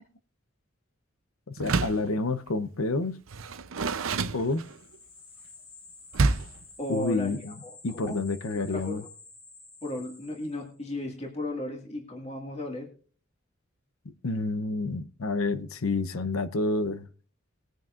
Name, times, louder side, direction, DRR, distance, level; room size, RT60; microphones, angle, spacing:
voice 1, 1.5-3.2 4.3-4.6 6.9-7.5 7.8-9.0 14.2-17.1, left 3 dB, 85° left, 0.8 m, -29 dB
Door, 1.6-2.1 3.3-5.0 6.1-6.6, right 3 dB, 75° right, 0.7 m, -28 dB
sound 1, 4.3-10.9, left 3 dB, 50° left, 4.6 m, -51 dB
voice 2, 6.8-8.2 8.5-9.1 9.8-12.9, left 1 dB, 30° left, 2.0 m, -35 dB
20.5 x 9.2 x 2.5 m
head